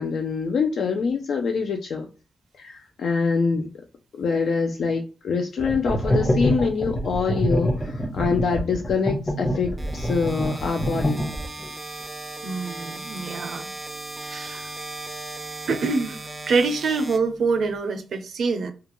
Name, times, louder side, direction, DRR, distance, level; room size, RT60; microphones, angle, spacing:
voice 1, 0.0-2.1 2.6-3.7 4.1-11.2, left 5 dB, 75° left, 0.4 m, -25 dB
sound 1, 5.6-11.7, equal, 25° left, 0.8 m, -25 dB
sound 2, 9.8-17.8, right 2 dB, 15° right, 0.4 m, -37 dB
voice 2, 12.4-13.7 14.2-14.7 15.7-18.7, right 4 dB, 75° right, 0.5 m, -25 dB
2.4 x 2.2 x 2.9 m
wide cardioid pair, 155°, 0 cm